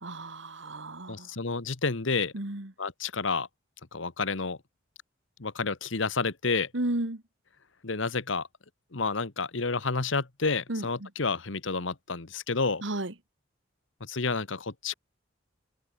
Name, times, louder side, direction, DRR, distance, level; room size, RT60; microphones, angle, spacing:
voice 1, 0.0-1.3 2.3-2.7 6.7-7.2 10.7-11.1 12.8-13.1, right 1 dB, 70° right, 2.3 m, -33 dB
voice 2, 1.1-2.3 2.8-3.5 3.9-4.6 5.4-6.7 7.8-8.5 8.9-12.8 14.0-14.9, left 4 dB, 70° left, 1.4 m, -30 dB
head